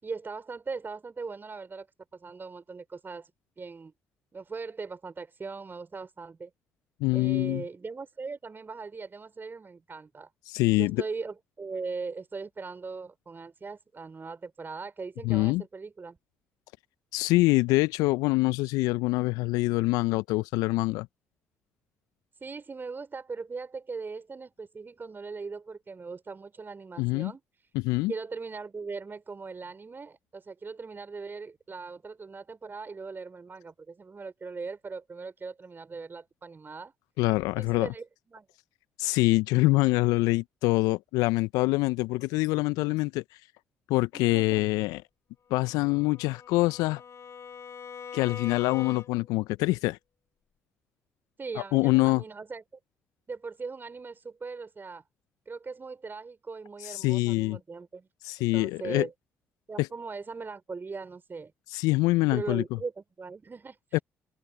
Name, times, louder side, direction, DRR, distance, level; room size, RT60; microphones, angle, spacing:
voice 1, 0.0-1.9 2.1-3.3 3.6-3.9 4.3-6.5 7.1-10.3 10.8-16.2 22.4-27.4 28.1-36.9 37.6-38.5 44.1-44.7 51.4-52.6 53.3-55.0 55.5-58.1 58.5-59.1 59.7-61.5 62.3-64.0, right 4 dB, 30° right, 4.4 m, -39 dB
voice 2, 7.0-7.6 10.5-11.0 15.2-15.6 17.1-21.1 27.0-27.3 27.7-28.1 37.2-37.9 39.0-43.2 43.9-45.0 45.5-47.0 48.1-50.0 51.6-52.2 56.8-57.6 58.2-59.1 59.8-59.9 61.7-62.6 63.9-64.0, left 21 dB, 70° left, 1.0 m, -25 dB
Bowed string instrument, 45.6-49.4, left 7 dB, 45° left, 6.0 m, -43 dB
figure-of-eight pair, 45°, 7 cm